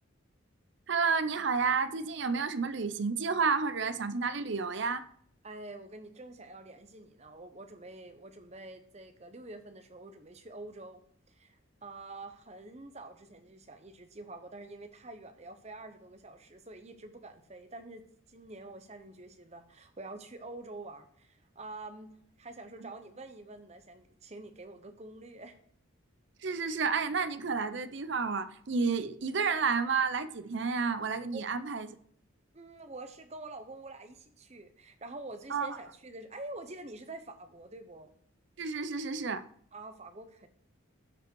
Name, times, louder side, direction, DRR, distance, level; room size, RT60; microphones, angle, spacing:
voice 1, 0.9-5.0 26.4-31.9 35.5-35.7 38.6-39.4, right 5 dB, 55° right, 0.6 m, -30 dB
voice 2, 5.4-11.0 11.3-18.0 18.3-22.1 22.4-25.6 31.3-31.5 32.5-38.1 39.7-40.5, right 2 dB, 30° right, 0.9 m, -47 dB
13.0 x 5.3 x 4.6 m
head